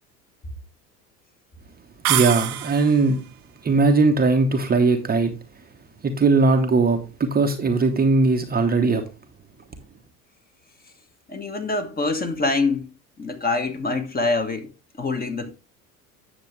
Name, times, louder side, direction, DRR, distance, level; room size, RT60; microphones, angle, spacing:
sound 1, 2.0-3.1, right 14 dB, 70° right, 1.0 m, -25 dB
voice 1, 2.1-3.2 3.6-5.3 6.0-9.0, right 3 dB, 20° right, 1.0 m, -19 dB
voice 2, 11.3-12.9 13.2-15.5, left 3 dB, 20° left, 1.5 m, -25 dB
9.3 x 6.8 x 3.3 m
figure-of-eight pair, 75°, 45 cm